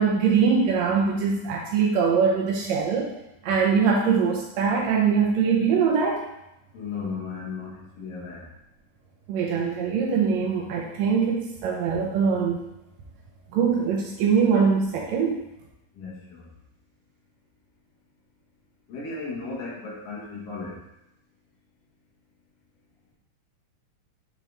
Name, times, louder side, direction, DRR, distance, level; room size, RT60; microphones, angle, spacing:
voice 1, 0.0-3.1 3.4-6.2 9.3-12.6 13.5-15.3, right 6 dB, 75° right, -2 dB, 1.7 m, -22 dB
voice 2, 6.7-8.4 16.0-16.4 18.9-20.8, left 4 dB, 75° left, -4 dB, 2.9 m, -35 dB
7.5 x 3.7 x 3.4 m, 0.87 s
omnidirectional pair, 3.9 m